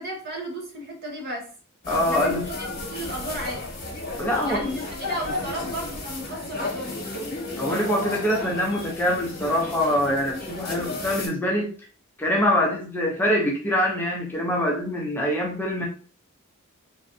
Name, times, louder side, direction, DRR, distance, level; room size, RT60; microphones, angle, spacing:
voice 1, 0.0-1.5 2.1-3.7 4.4-7.0 10.8-11.0, right 1 dB, 50° right, 0.9 m, -34 dB
sound 1, 1.8-11.3, left 2 dB, 45° left, 1.1 m, -33 dB
voice 2, 1.9-2.5 4.2-4.8 7.6-11.7 12.2-15.9, left 1 dB, 10° left, 0.5 m, -24 dB
3.1 x 2.5 x 2.6 m
head